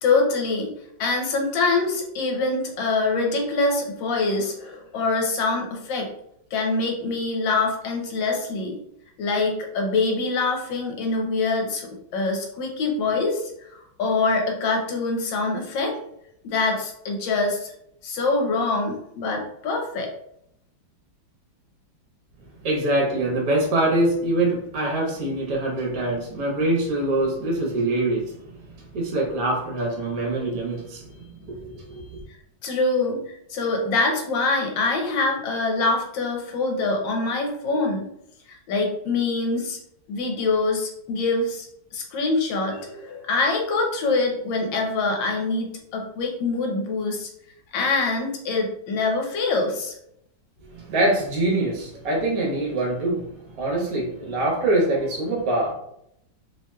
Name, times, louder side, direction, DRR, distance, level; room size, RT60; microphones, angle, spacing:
voice 1, 0.0-0.7 1.0-6.1 6.5-8.8 9.2-13.7 14.0-16.0 16.4-17.7 18.0-20.1 32.6-38.1 38.5-39.8 40.1-41.7 41.9-47.3 47.7-49.9, left 3 dB, 75° left, 1 dB, 1.4 m, -24 dB
voice 2, 22.6-28.5 28.9-32.1 50.7-53.2 53.6-55.7, right 2 dB, 55° right, -2 dB, 1.3 m, -24 dB
3.2 x 2.7 x 2.2 m, 0.75 s
omnidirectional pair, 2.1 m